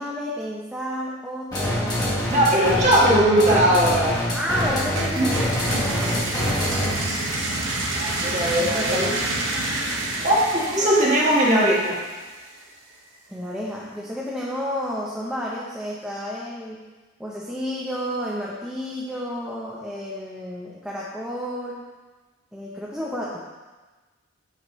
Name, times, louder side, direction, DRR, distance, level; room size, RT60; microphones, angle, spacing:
voice 1, 0.0-2.3 4.3-7.0 8.5-9.2 10.8-10.9 13.3-16.9 17.2-21.9 22.5-23.4, equal, 5° right, -6 dB, 0.6 m, -31 dB
sound 1, 1.5-7.1, left 1 dB, 20° left, 1.3 m, -25 dB
voice 2, 2.3-4.2 5.2-5.3 8.0-9.1 10.2-11.9, right 1 dB, 35° right, -5 dB, 1.6 m, -19 dB
sound 2, 4.6-12.4, right 2 dB, 65° right, 1.1 m, -28 dB
8.2 x 5.0 x 3.1 m, 1.3 s
head